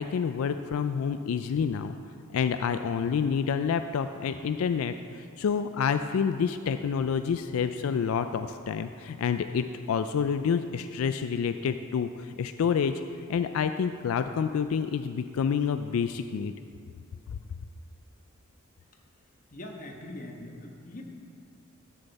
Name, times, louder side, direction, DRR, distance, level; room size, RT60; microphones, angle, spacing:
voice 1, 0.0-1.9 2.3-12.9 13.3-16.5, left 6 dB, 85° left, 9 dB, 0.3 m, -28 dB
voice 2, 19.5-21.0, left 1 dB, 40° left, 2 dB, 1.2 m, -42 dB
13.5 x 7.0 x 4.1 m, 2.4 s
head